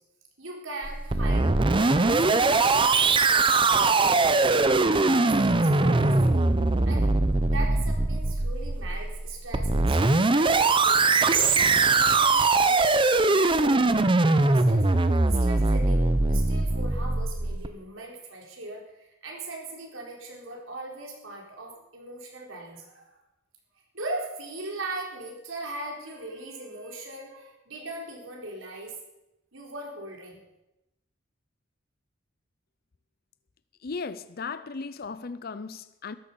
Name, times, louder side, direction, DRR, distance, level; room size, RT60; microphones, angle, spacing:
voice 1, 0.4-4.5 5.1-6.5 6.8-7.2 7.5-11.0 11.4-14.9 15.2-23.2 23.9-28.9 29.5-30.4, right 2 dB, 85° right, 4.3 m, -39 dB
sound 1, 0.8-17.7, right 3 dB, 25° right, 0.7 m, -22 dB
voice 2, 33.8-36.1, left 4 dB, 50° left, 0.6 m, -36 dB
13.5 x 11.0 x 7.0 m
head